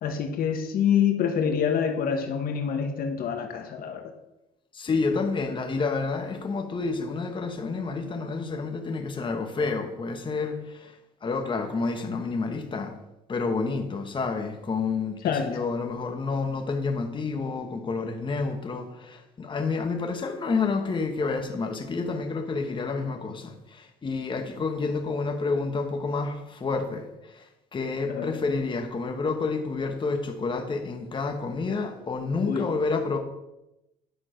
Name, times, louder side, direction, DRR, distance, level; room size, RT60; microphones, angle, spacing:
voice 1, 0.0-4.1 15.2-15.5 28.1-28.4 32.5-32.7, left 7 dB, 60° left, 1.2 m, -26 dB
voice 2, 4.7-13.0 13.3-33.2, left 4 dB, 30° left, 1.2 m, -29 dB
10.0 x 6.1 x 5.0 m
cardioid pair, 110°, 17 cm